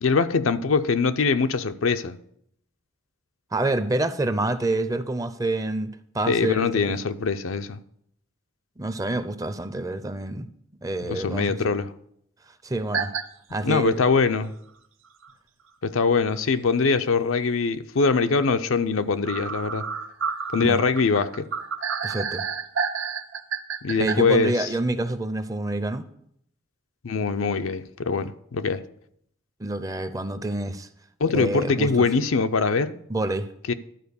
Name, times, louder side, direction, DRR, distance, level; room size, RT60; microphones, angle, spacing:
voice 1, 0.0-2.2 6.3-7.8 11.0-11.9 13.6-14.5 15.8-19.8 20.5-21.5 23.8-24.7 27.0-28.8 31.2-32.9 33.7-33.8, left 4 dB, 80° left, 0.6 m, -23 dB
voice 2, 3.5-5.9 6.1-7.0 8.8-10.5 10.8-11.6 12.6-13.1 13.5-14.0 20.6-20.8 22.0-22.5 24.0-26.1 29.6-30.9 31.3-31.9 33.1-33.5, right 2 dB, 15° right, 0.5 m, -27 dB
sound 1, 12.9-13.2 13.7-13.8 15.2-15.3 16.0-16.1 16.4-16.5 19.3-24.2, right 6 dB, 70° right, 0.7 m, -30 dB
11.5 x 4.6 x 6.9 m
head